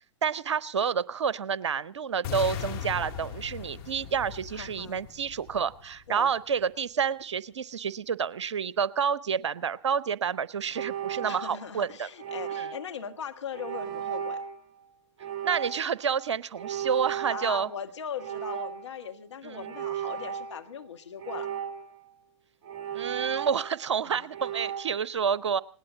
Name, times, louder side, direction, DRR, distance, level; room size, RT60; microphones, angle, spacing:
voice 1, 0.2-12.1 12.6-12.7 15.4-17.7 19.4-19.7 22.9-25.6, right 7 dB, 70° right, 20 dB, 0.7 m, -29 dB
sound 1, 2.2-6.3, left 9 dB, 40° left, 2.6 m, -38 dB
voice 2, 4.5-5.0 6.1-6.3 11.2-14.4 17.3-21.5 24.0-24.3, left 7 dB, 70° left, 5 dB, 1.6 m, -39 dB
sound 2, 10.8-11.8 12.2-13.0 13.5-14.6 15.2-16.0 16.5-17.8 18.2-19.0 19.5-20.6 21.2-22.1 22.6-23.9 24.3-24.8, right 9 dB, 25° right, 1.7 m, -35 dB
20.0 x 18.0 x 3.9 m, 0.39 s
figure-of-eight pair, 105°, 16 cm